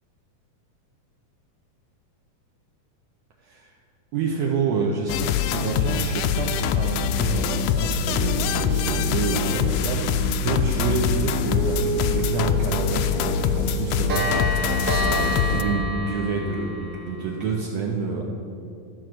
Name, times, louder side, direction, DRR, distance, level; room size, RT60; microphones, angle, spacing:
voice 1, 3.4-3.7 4.1-18.2, right 4 dB, 80° right, -2 dB, 1.5 m, -28 dB
sound 1, 5.1-15.6, left 7 dB, 85° left, 1.8 m, -24 dB
Piano, 8.1-15.0, right 2 dB, 55° right, 2.6 m, -32 dB
Clock, 12.2-12.3 12.6-12.8 13.0-13.1 13.5-17.5, equal, 35° right, 2.0 m, -29 dB
13.5 x 4.7 x 7.6 m, 2.5 s
omnidirectional pair, 4.1 m